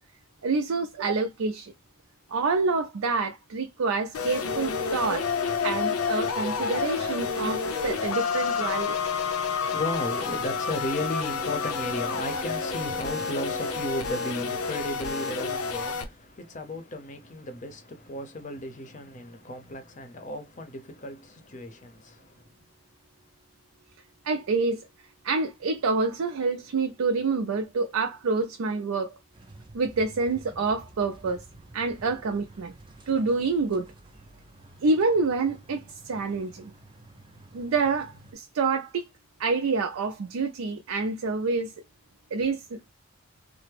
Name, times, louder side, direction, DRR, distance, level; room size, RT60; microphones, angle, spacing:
voice 1, 0.4-1.7 2.3-5.3 5.6-9.0 24.2-24.9 25.2-29.2 29.7-31.4 31.7-32.7 33.1-33.9 34.8-36.7 37.5-39.1 39.4-41.7 42.3-42.8, right 4 dB, 80° right, 0.4 m, -27 dB
sound 1, 4.1-16.0, left 5 dB, 90° left, 0.6 m, -29 dB
voice 2, 9.6-22.7, left 1 dB, 35° left, 0.6 m, -35 dB
Wind instrument woodwind instrument, 11.3-14.2, right 2 dB, ahead, 0.8 m, -44 dB
sound 2, 29.3-38.3, right 2 dB, 20° right, 0.4 m, -50 dB
3.3 x 2.0 x 3.2 m
head